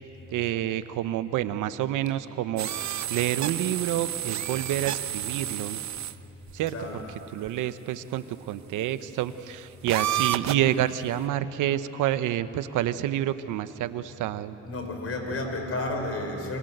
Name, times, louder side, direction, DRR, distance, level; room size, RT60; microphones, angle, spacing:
voice 1, 0.3-2.7 3.1-5.8 6.5-7.0 7.3-14.6, right 12 dB, 90° right, 12 dB, 1.0 m, -28 dB
sound 1, 2.6-6.1 6.5-6.6 7.5-7.6 9.9-10.7, right 12 dB, 65° right, 0.9 m, -30 dB
voice 2, 14.6-16.6, left 2 dB, 50° left, 3 dB, 5.6 m, -31 dB
29.0 x 25.0 x 8.1 m, 3.0 s
cardioid pair, 90°, 30 cm